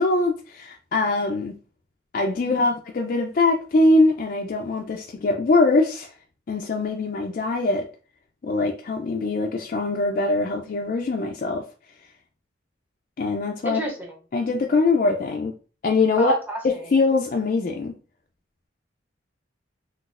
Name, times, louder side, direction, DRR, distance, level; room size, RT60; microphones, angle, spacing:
voice 1, 0.0-1.6 2.1-6.1 6.5-7.9 8.4-11.6 13.2-13.8 14.3-15.5 15.8-16.3 16.6-17.9, left 3 dB, 45° left, 0.3 m, -22 dB
voice 2, 13.6-14.2 16.2-16.9, right 1 dB, 10° right, 0.7 m, -31 dB
3.9 x 2.3 x 2.4 m
head